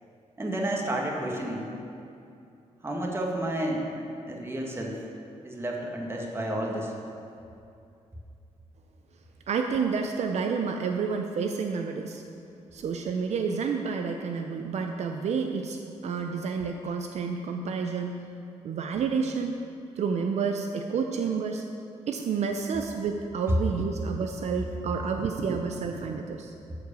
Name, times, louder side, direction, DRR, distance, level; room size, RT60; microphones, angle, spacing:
voice 1, 0.4-1.7 2.8-3.9 4.3-5.1 5.4-6.9, right 1 dB, 20° right, -1 dB, 1.7 m, -31 dB
voice 2, 9.5-12.2 12.7-18.2 18.6-19.6 20.0-21.6 22.1-26.5, right 5 dB, 65° right, 4 dB, 0.6 m, -29 dB
12.5 x 4.8 x 6.8 m, 2.6 s
cardioid pair, 115°, 12 cm